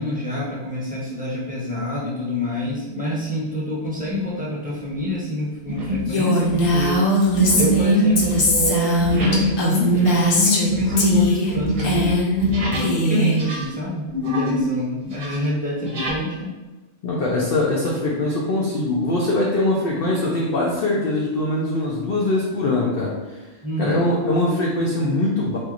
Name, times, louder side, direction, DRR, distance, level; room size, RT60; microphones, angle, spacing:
voice 1, 0.0-7.0 7.5-16.5 23.6-24.0, left 1 dB, 10° right, -7 dB, 0.8 m, -27 dB
sound 1, 4.1-4.3 4.8-5.1 5.7-6.1 6.4-13.0 13.3-14.7 15.0-16.2, left 1 dB, 55° right, 0.8 m, -25 dB
Female speech woman speaking, 6.1-10.7 11.0-11.5 11.8-12.4 12.7-13.4, equal, 75° left, 1.1 m, -20 dB
voice 2, 17.0-23.4 23.8-25.6, left 2 dB, 60° left, -3 dB, 0.7 m, -22 dB
4.3 x 2.6 x 2.5 m, 1.2 s
omnidirectional pair, 1.4 m